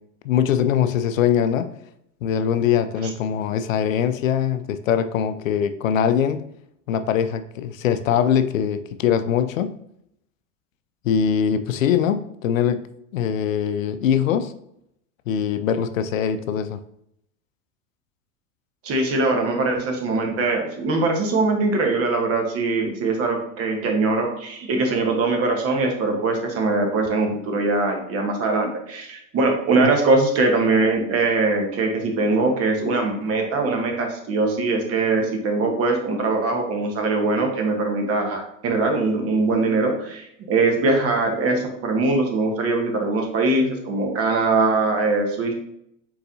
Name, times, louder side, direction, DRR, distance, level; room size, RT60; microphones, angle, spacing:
voice 1, 0.2-1.7 2.2-6.4 6.9-9.7 11.0-12.9 13.1-14.5 15.3-16.8, left 8 dB, 85° left, 10 dB, 0.5 m, -22 dB
voice 2, 18.8-45.5, right 3 dB, 35° right, 2 dB, 1.2 m, -22 dB
4.6 x 4.0 x 2.7 m, 0.75 s
hypercardioid pair, 100°, 39 cm